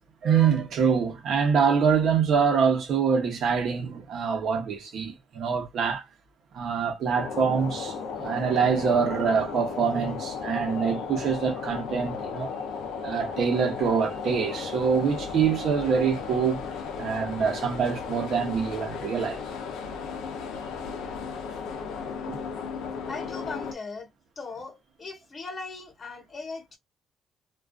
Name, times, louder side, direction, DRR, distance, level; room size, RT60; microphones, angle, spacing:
voice 1, 0.2-6.1 6.5-12.5 13.0-19.4 22.3-22.4, right 6 dB, 70° right, 0.8 m, -25 dB
sound 1, 7.1-23.7, left 5 dB, 85° left, 0.5 m, -35 dB
voice 2, 23.1-24.1 24.4-26.8, left 4 dB, 40° left, 1.0 m, -38 dB
2.3 x 2.3 x 2.3 m
cardioid pair, 90°, 0 cm